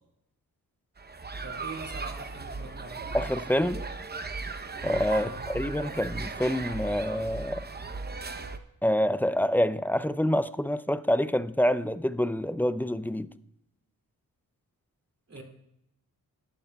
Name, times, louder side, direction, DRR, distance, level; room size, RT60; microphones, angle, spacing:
sound 1, 1.0-8.6, right 4 dB, 25° right, 0.8 m, -37 dB
voice 1, 1.4-3.1 5.1-5.4 15.3-15.4, right 3 dB, 45° right, 2.6 m, -43 dB
voice 2, 3.1-3.8 4.8-5.3 5.5-7.6 8.8-13.3, equal, 5° left, 0.4 m, -26 dB
20.5 x 11.5 x 2.3 m
cardioid pair, 70°, 36 cm